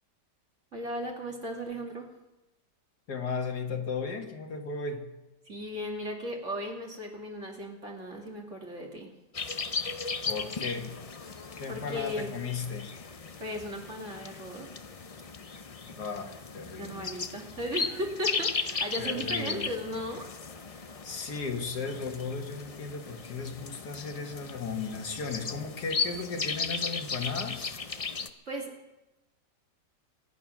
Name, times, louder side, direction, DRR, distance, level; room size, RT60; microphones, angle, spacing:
voice 1, 0.7-2.1 5.5-9.1 11.7-12.4 13.4-14.7 16.8-20.3 20.7-20.9 28.5-28.7, equal, 45° right, 0 dB, 2.8 m, -36 dB
voice 2, 3.1-5.1 10.3-11.0 11.6-12.9 15.9-17.1 19.0-19.8 21.0-27.7, left 4 dB, 70° left, 4 dB, 2.2 m, -35 dB
sound 1, 9.3-28.3, left 5 dB, 45° left, 0.4 m, -36 dB
24.0 x 9.5 x 6.1 m, 1.0 s
omnidirectional pair, 1.8 m